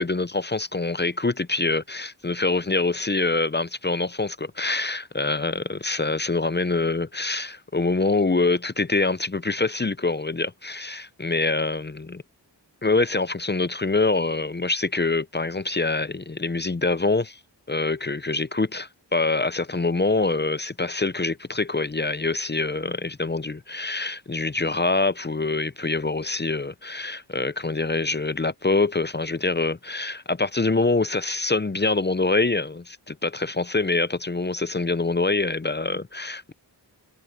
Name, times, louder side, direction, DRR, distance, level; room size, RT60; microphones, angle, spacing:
voice 1, 0.0-12.2 12.8-17.4 17.7-36.5, left 3 dB, 25° left, 0.5 m, -25 dB
wide cardioid pair, 65°, 44 cm